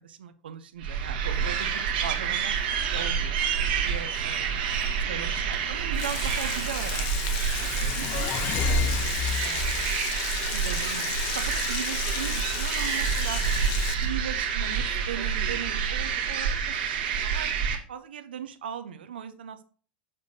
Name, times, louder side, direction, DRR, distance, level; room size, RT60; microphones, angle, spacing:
voice 1, 0.0-2.5 2.8-3.4 3.8-4.6 5.1-8.9 9.4-10.0 10.5-13.4 14.0-17.5 17.9-19.6, right 8 dB, 90° right, 9 dB, 0.6 m, -38 dB
sound 1, 0.8-17.8, right 7 dB, 65° right, 1.3 m, -28 dB
Frying (food), 5.9-13.9, left 9 dB, 55° left, 0.8 m, -34 dB
sound 2, 7.6-9.9, left 9 dB, 40° left, 0.4 m, -30 dB
6.7 x 5.2 x 2.7 m, 0.41 s
hypercardioid pair, 110°, 5 cm